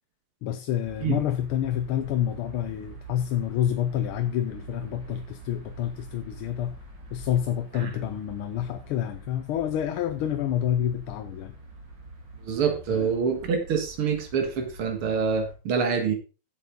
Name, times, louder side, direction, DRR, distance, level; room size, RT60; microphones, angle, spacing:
voice 1, 0.4-6.8 7.1-11.5 12.9-13.2, left 10 dB, 75° left, 1.6 m, -28 dB
sound 1, 0.8-15.5, right 2 dB, 55° right, 2.9 m, -45 dB
voice 2, 12.4-16.1, right 6 dB, 80° right, 2.5 m, -26 dB
9.1 x 7.6 x 3.9 m
omnidirectional pair, 2.4 m